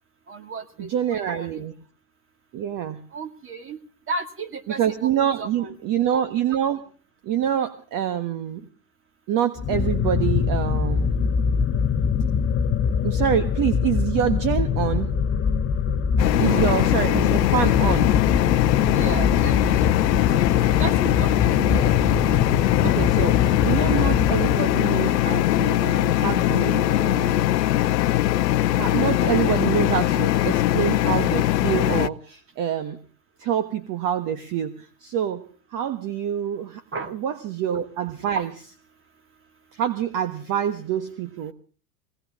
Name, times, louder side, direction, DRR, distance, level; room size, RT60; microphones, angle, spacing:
voice 1, 0.3-1.6 3.1-3.8 4.1-5.7 16.3-16.6 18.9-19.9 20.3-21.5 29.4-29.5 36.9-37.1 38.4-38.5, right 4 dB, 25° right, 7 dB, 2.4 m, -34 dB
voice 2, 0.8-1.7 2.5-3.0 4.7-6.8 7.2-8.7 9.3-11.1 13.0-15.1 16.4-18.1 21.5-21.9 22.8-27.5 28.7-33.0 33.4-38.5 39.7-41.5, right 10 dB, 40° right, 10 dB, 1.5 m, -26 dB
sound 1, 9.6-24.9, left 6 dB, 25° left, 0.9 m, -23 dB
sound 2, 16.2-32.1, left 14 dB, 85° left, 0.7 m, -21 dB
21.5 x 18.0 x 3.7 m, 0.41 s
hypercardioid pair, 105°, 48 cm